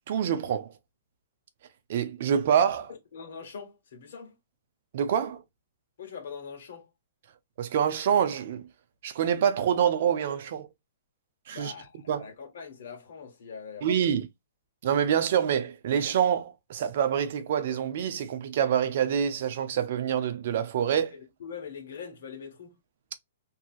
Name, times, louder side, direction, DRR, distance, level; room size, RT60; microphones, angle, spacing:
voice 1, 0.1-0.7 1.9-2.9 4.9-5.4 7.6-8.7 9.0-10.7 11.5-11.7 12.1-12.3 13.8-14.3 14.8-21.2, right 8 dB, 50° right, 0.6 m, -26 dB
voice 2, 3.1-4.3 6.0-6.9 11.5-14.2 21.1-22.8, left 6 dB, 60° left, 1.3 m, -42 dB
2.8 x 2.7 x 2.4 m
hypercardioid pair, 160°, 0 cm